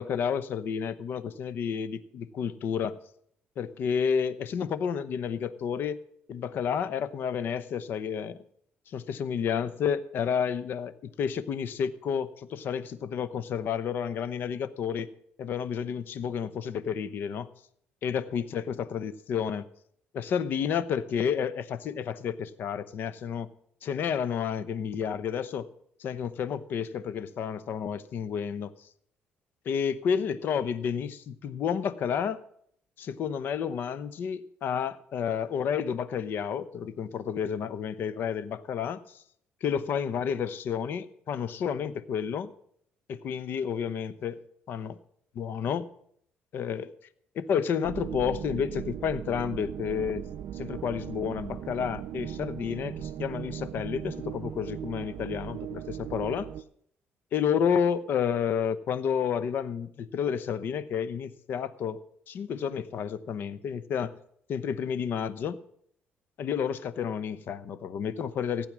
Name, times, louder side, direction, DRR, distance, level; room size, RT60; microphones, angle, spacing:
voice 1, 0.0-3.0 3.6-6.0 6.3-8.4 8.9-15.1 15.4-17.5 18.0-19.7 20.1-23.5 23.8-25.7 26.0-28.7 29.6-32.4 33.0-39.2 39.6-42.5 43.1-45.0 45.3-45.9 46.5-46.9 47.3-50.3 50.5-56.5 57.3-62.0 62.3-64.2 64.5-65.6 66.4-68.7, left 7 dB, 55° left, 14 dB, 0.9 m, -30 dB
sound 1, 47.8-56.6, right 10 dB, 60° right, 0.6 m, -38 dB
15.5 x 8.8 x 6.2 m, 0.67 s
cardioid pair, 135°, 4 cm